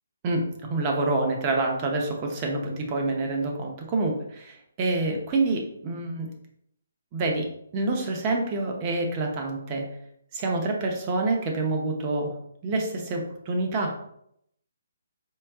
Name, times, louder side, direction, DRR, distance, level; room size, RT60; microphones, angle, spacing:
voice 1, 0.2-6.3 7.1-9.9 10.3-12.3 12.6-14.1, right 2 dB, 25° right, 2 dB, 0.7 m, -27 dB
4.6 x 2.0 x 3.5 m, 0.73 s
hypercardioid pair, 165°, 0 cm